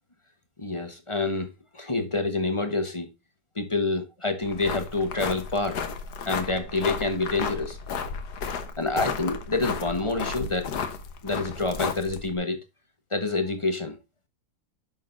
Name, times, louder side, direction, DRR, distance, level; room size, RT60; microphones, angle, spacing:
voice 1, 0.6-1.5 1.7-3.1 3.5-5.8 6.2-7.8 8.8-10.7 11.2-12.6 13.1-14.0, left 3 dB, 20° left, 1.1 m, -27 dB
sound 1, 4.4-12.4, left 6 dB, 60° left, 1.5 m, -33 dB
9.9 x 6.4 x 2.6 m
omnidirectional pair, 2.1 m